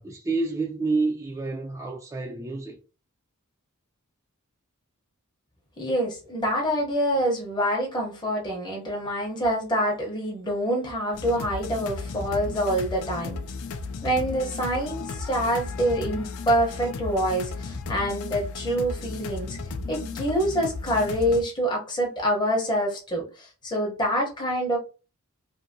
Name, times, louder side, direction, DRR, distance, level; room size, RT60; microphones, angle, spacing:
voice 1, 0.0-2.8, right 3 dB, 15° right, 0.4 m, -28 dB
voice 2, 5.8-13.4 14.0-19.6 19.9-24.8, equal, 20° left, 0.7 m, -26 dB
sound 1, 11.1-21.4, left 4 dB, 65° left, 0.4 m, -35 dB
2.6 x 2.6 x 2.6 m
head